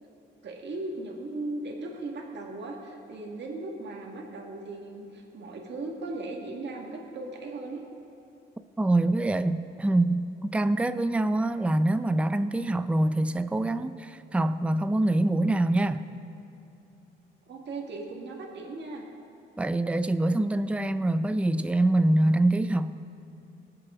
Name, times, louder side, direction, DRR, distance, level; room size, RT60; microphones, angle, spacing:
voice 1, 0.4-7.8 17.5-19.1, right 2 dB, 55° right, 0 dB, 1.9 m, -37 dB
voice 2, 8.8-16.0 19.6-23.0, right 1 dB, 5° right, 11 dB, 0.4 m, -25 dB
23.0 x 7.7 x 3.8 m, 2.7 s
cardioid pair, 95°, 21 cm